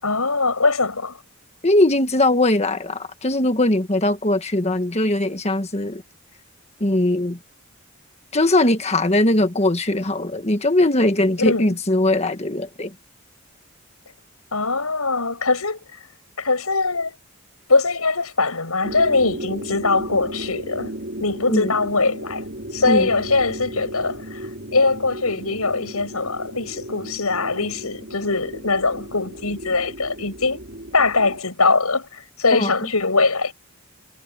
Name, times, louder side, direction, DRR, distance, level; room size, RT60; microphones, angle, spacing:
voice 1, 0.0-1.2 11.5-11.8 14.5-15.8 16.4-17.1 17.7-20.9 21.2-22.5 22.7-24.4 24.7-30.6 30.9-33.5, left 3 dB, 90° left, 7.0 m, -21 dB
voice 2, 1.6-6.0 6.8-7.4 8.3-12.9 21.5-21.7 22.9-23.1 32.5-32.7, left 1 dB, 30° left, 1.6 m, -20 dB
sound 1, 18.8-31.4, right 1 dB, 55° right, 5.1 m, -35 dB
head